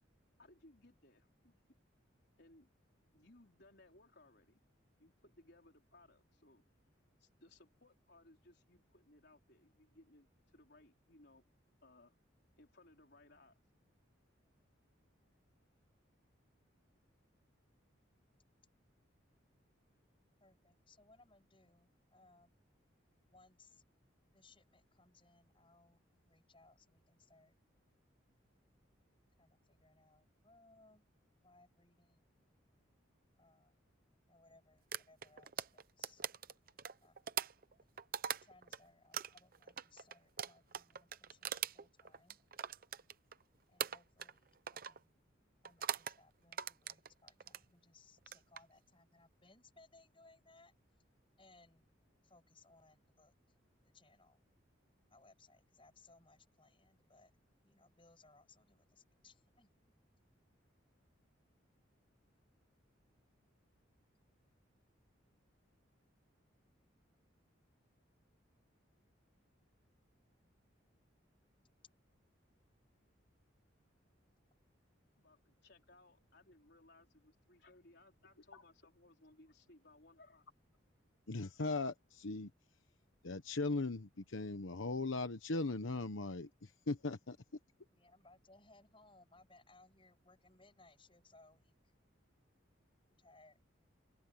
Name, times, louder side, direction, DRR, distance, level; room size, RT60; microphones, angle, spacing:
voice 1, 0.4-1.5 2.4-2.7 3.1-4.6 5.0-6.6 7.2-11.4 11.8-12.2 12.6-13.6 75.2-80.4, left 2 dB, 55° left, 4.4 m, -64 dB
voice 2, 20.4-22.6 23.3-23.8 24.3-27.5 29.4-31.1 31.4-32.4 33.4-33.8 34.3-36.2 37.0-37.4 38.3-42.4 43.7-45.2 45.6-50.7 51.4-51.9 52.2-53.3 53.8-54.4 55.1-57.3 57.6-59.7 64.6-64.7 87.9-91.9 93.0-93.6, left 3 dB, 25° left, 7.9 m, -66 dB
sound 1, 34.9-38.8 39.1-43.4 43.8-44.4 44.7-45.0 45.6-46.2 46.5-47.6 48.2-48.6, right 8 dB, 45° right, 0.8 m, -42 dB
voice 3, 81.3-82.5 83.2-87.4, left 3 dB, 80° left, 1.1 m, -39 dB
head